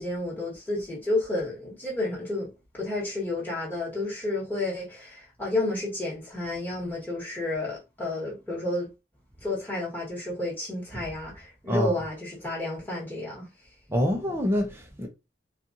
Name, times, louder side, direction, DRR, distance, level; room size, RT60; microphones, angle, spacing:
voice 1, 0.0-2.5 2.7-8.9 9.4-13.4, left 2 dB, 10° left, 1.6 m, -31 dB
voice 2, 13.9-15.1, equal, 15° right, 0.7 m, -26 dB
4.3 x 2.5 x 2.7 m
head